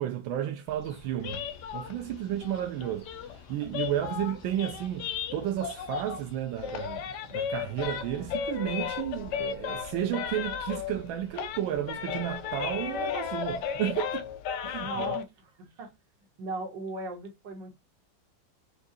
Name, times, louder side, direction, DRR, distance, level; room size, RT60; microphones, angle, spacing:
voice 1, 0.0-1.4 1.7-14.2 14.6-15.2, right 11 dB, 90° right, 1.4 m, -32 dB
sound 1, 0.7-14.2, left 2 dB, 85° left, 2.5 m, -52 dB
sound 2, 1.2-6.3 6.6-11.1 11.3-15.2, left 8 dB, 70° left, 1.1 m, -35 dB
voice 2, 14.8-16.0 16.4-17.8, right 3 dB, 65° right, 1.9 m, -38 dB
6.1 x 2.3 x 2.7 m
omnidirectional pair, 2.1 m